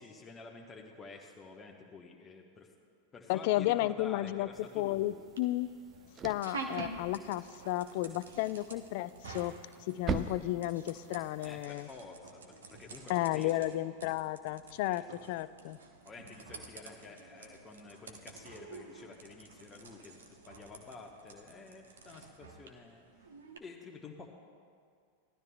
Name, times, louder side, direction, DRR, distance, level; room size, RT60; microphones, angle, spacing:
voice 1, 0.0-2.7 3.1-5.2 11.4-13.8 14.8-15.0 16.0-23.0 23.6-24.3, left 4 dB, 20° left, 1 dB, 1.0 m, -50 dB
voice 2, 3.3-4.5 4.7-5.7 6.2-9.5 9.9-11.9 13.1-15.8, left 16 dB, 50° left, 16 dB, 0.3 m, -33 dB
sound 1, 4.0-23.6, right 3 dB, 65° right, 1.0 m, -49 dB
sound 2, 4.5-11.7, right 5 dB, 25° right, 0.5 m, -43 dB
18.5 x 12.0 x 2.3 m, 2.2 s
figure-of-eight pair, 90°, 0 cm